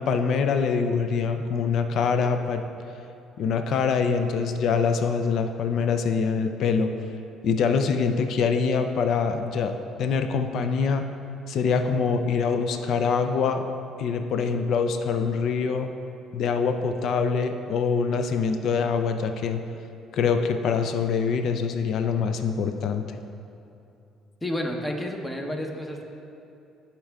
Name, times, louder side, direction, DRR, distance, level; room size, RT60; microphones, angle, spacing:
voice 1, 0.0-2.6 3.4-6.9 7.4-9.7 10.0-11.1 11.5-13.6 14.0-15.9 16.3-19.6 20.1-23.0, left 5 dB, 60° left, 7 dB, 0.4 m, -24 dB
voice 2, 24.4-26.0, left 1 dB, 10° left, 2 dB, 0.8 m, -30 dB
11.0 x 4.4 x 3.5 m, 2.7 s
cardioid pair, 105°, 0 cm